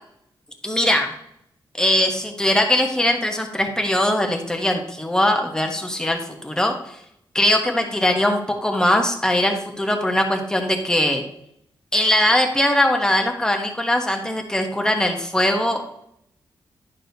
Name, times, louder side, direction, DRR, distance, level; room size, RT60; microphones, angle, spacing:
voice 1, 0.6-1.1 1.8-7.0 7.3-11.2 11.9-15.9, left 1 dB, 10° left, 3 dB, 0.9 m, -21 dB
10.5 x 6.1 x 2.7 m, 0.75 s
wide cardioid pair, 160°, 9 cm